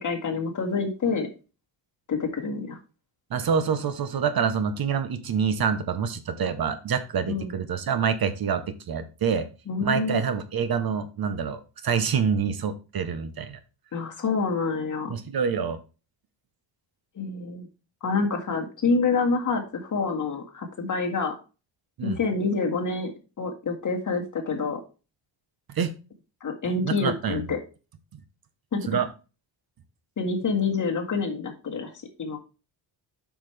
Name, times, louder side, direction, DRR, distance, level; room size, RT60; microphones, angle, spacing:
voice 1, 0.0-1.3 2.1-2.8 7.3-7.5 9.7-10.3 13.9-15.1 17.2-17.7 18.0-21.4 22.0-23.1 23.4-24.8 26.4-27.6 28.7-29.0 30.2-31.9 32.2-32.4, left 4 dB, 40° left, 2 dB, 1.8 m, -27 dB
voice 2, 3.3-9.5 9.8-13.6 15.1-15.8 22.0-22.2 25.7-25.9 26.8-27.4 28.9-29.1, right 6 dB, 50° right, 11 dB, 0.9 m, -26 dB
8.5 x 5.9 x 3.3 m, 0.33 s
cardioid pair, 130°, 46 cm